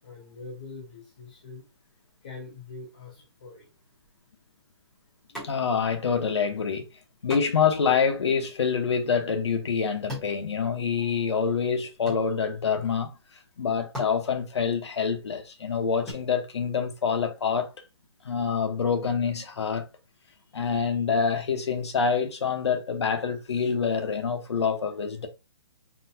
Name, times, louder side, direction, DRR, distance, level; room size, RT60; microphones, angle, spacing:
voice 1, 0.0-1.6 2.2-3.7, left 3 dB, 20° left, 0.4 m, -43 dB
sound 1, 5.3-6.0 6.2-6.3 7.3-11.2 11.5-12.8 13.4-13.5 13.8-16.1, left 1 dB, 5° left, 1.0 m, -42 dB
voice 2, 5.4-6.9 7.2-13.1 13.6-17.7 18.2-19.8 20.5-25.3, left 6 dB, 75° left, 0.9 m, -26 dB
4.0 x 2.2 x 2.6 m
hypercardioid pair, 175°, 14 cm